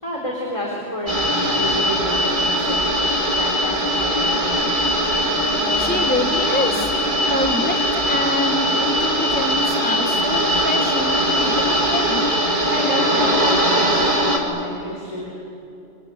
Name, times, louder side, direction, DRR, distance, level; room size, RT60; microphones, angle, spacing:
voice 1, 0.0-2.9 3.4-4.6 12.6-15.3, equal, 25° left, -2 dB, 3.7 m, -29 dB
sound 1, 1.1-14.4, equal, 45° right, 2.9 m, -20 dB
voice 2, 4.3-12.2, left 1 dB, 10° left, 4 dB, 1.1 m, -27 dB
26.0 x 23.0 x 9.6 m, 2.8 s
omnidirectional pair, 1.2 m